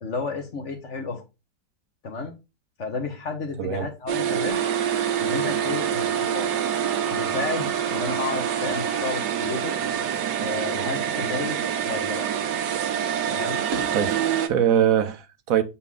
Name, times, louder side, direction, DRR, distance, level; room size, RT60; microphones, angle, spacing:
voice 1, 0.0-1.2 2.0-2.3 2.8-4.6 5.2-6.5 7.1-9.8 10.4-12.3 13.3-13.6, left 4 dB, 45° left, 1.5 m, -32 dB
voice 2, 3.6-3.9 13.9-15.6, right 9 dB, 60° right, 1.1 m, -23 dB
sound 1, 4.1-14.5, right 9 dB, 75° right, 1.4 m, -26 dB
sound 2, 4.5-14.3, right 3 dB, 35° right, 1.4 m, -39 dB
6.7 x 4.3 x 3.7 m
omnidirectional pair, 1.8 m